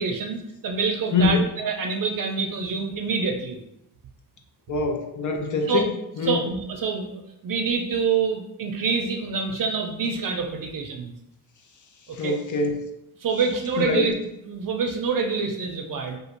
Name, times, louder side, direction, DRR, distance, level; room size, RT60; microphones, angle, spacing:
voice 1, 0.0-3.6 5.7-5.8 6.2-11.1 12.2-12.4 13.2-14.1 14.4-16.2, right 5 dB, 45° right, 4 dB, 0.6 m, -26 dB
voice 2, 1.1-1.4 4.7-6.4 12.2-12.9 13.8-14.1, left 3 dB, 45° left, 4 dB, 0.5 m, -24 dB
2.9 x 2.3 x 2.6 m, 0.83 s
supercardioid pair, 50°, 46 cm